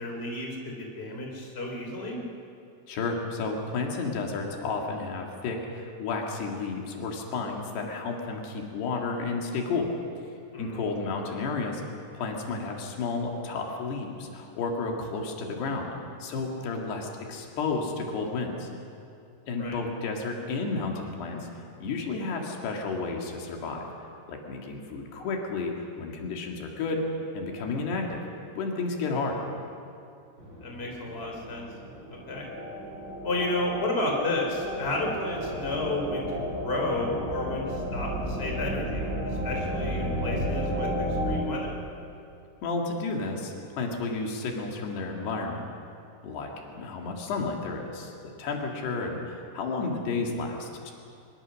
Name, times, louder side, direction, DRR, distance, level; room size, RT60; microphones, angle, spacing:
voice 1, 0.0-2.2 10.5-10.9 19.6-19.8 30.6-31.7 32.1-32.4 33.2-40.9 41.2-41.7, left 2 dB, 15° left, 0 dB, 3.2 m, -32 dB
voice 2, 2.9-9.9 10.6-11.8 12.1-15.9 16.2-18.7 19.5-23.8 24.3-25.7 26.0-27.0 27.3-28.2 28.5-29.4 42.6-45.6 46.2-50.9, left 3 dB, 85° left, 1 dB, 4.3 m, -32 dB
sound 1, 30.4-41.4, equal, 30° right, 4.9 m, -33 dB
23.5 x 22.0 x 6.4 m, 2.6 s
omnidirectional pair, 4.6 m